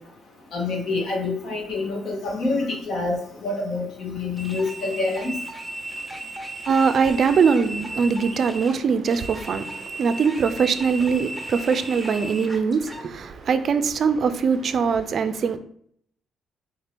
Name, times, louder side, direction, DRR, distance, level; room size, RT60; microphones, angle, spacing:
voice 1, 0.5-5.3, left 3 dB, 65° left, 1.4 m, -27 dB
sound 1, 4.4-13.0, right 1 dB, ahead, 1.1 m, -36 dB
voice 2, 6.7-15.6, right 5 dB, 55° right, 0.4 m, -22 dB
4.4 x 2.8 x 3.4 m
cardioid pair, 90°, 0 cm